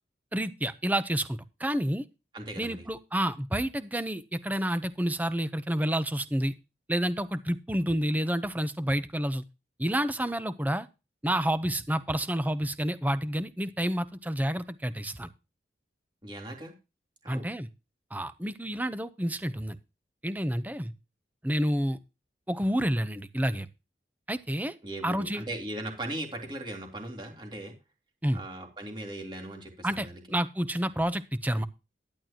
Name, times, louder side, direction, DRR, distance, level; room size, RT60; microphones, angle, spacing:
voice 1, 0.3-2.0 2.6-6.5 6.9-9.4 9.8-10.9 11.2-15.3 17.3-17.7 18.1-19.8 20.2-20.9 21.4-22.0 22.5-23.7 24.3-24.7 25.0-25.4 28.2-28.4 29.8-31.7, equal, 10° right, 13 dB, 0.8 m, -29 dB
voice 2, 2.3-2.8 16.2-16.7 17.2-17.5 24.8-27.7 28.3-30.2, right 1 dB, 25° right, 2 dB, 3.4 m, -38 dB
11.5 x 10.5 x 2.9 m, 0.27 s
head